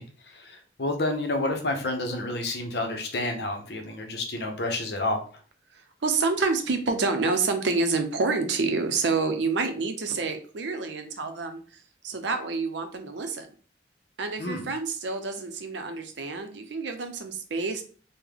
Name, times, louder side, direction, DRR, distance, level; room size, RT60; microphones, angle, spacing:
voice 1, 0.0-5.2 14.4-14.7, left 2 dB, 60° left, 4 dB, 0.7 m, -30 dB
voice 2, 5.7-11.6 12.0-13.5 14.2-17.8, right 4 dB, 75° right, 7 dB, 0.6 m, -28 dB
3.6 x 2.1 x 3.3 m, 0.41 s
head